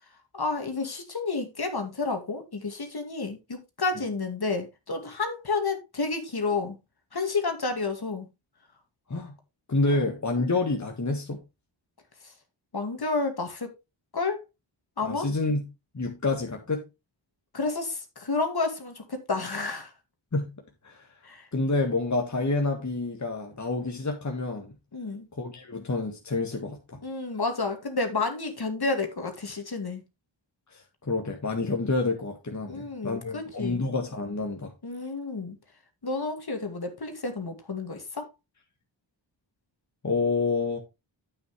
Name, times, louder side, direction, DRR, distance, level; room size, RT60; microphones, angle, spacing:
voice 1, 0.3-6.8 7.1-8.3 9.9-10.0 12.2-12.3 12.7-13.7 14.1-14.4 15.0-15.3 17.5-19.9 21.2-21.5 24.9-25.3 27.0-30.0 32.7-33.8 34.8-35.6 36.0-38.3, left 3 dB, 55° left, 2.3 m, -30 dB
voice 2, 9.7-11.4 15.0-15.6 15.9-16.8 20.3-20.5 20.8-21.1 21.5-24.7 25.4-27.0 30.7-34.7 40.0-40.8, left 3 dB, 35° left, 1.8 m, -28 dB
9.3 x 8.7 x 3.2 m
wide cardioid pair, 65°, 46 cm